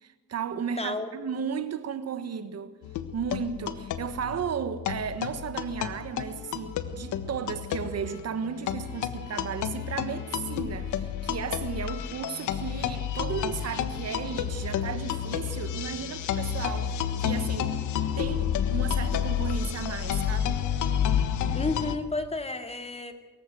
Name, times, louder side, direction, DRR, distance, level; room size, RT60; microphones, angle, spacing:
voice 1, 0.0-2.8 3.1-17.7 18.2-20.6, right 7 dB, 55° right, 1.5 m, -34 dB
voice 2, 0.8-1.1 21.5-23.1, left 3 dB, 20° left, 2.5 m, -31 dB
sound 1, 2.8-22.0, left 9 dB, 80° left, 1.4 m, -30 dB
23.5 x 15.0 x 7.8 m
cardioid pair, 90°, 30 cm